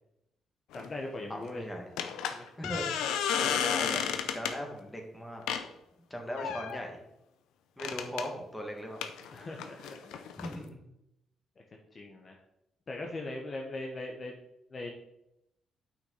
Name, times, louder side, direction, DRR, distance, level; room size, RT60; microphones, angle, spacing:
sound 1, 0.7-0.9 2.0-4.6 5.5-5.7 6.4-6.8 7.8-8.3 9.0-10.5, left 8 dB, 90° left, 0.6 m, -32 dB
voice 1, 0.7-1.7 2.0-2.5 3.7-4.3 9.3-10.2 11.6-12.4 12.9-14.3 14.7-14.9, left 2 dB, 40° left, 1 dB, 1.1 m, -41 dB
voice 2, 1.3-1.9 2.6-5.4 6.1-7.0 7.8-9.0 10.4-10.8, equal, 10° left, 1 dB, 1.9 m, -39 dB
8.7 x 5.7 x 4.1 m, 0.85 s
cardioid pair, 90°, 0 cm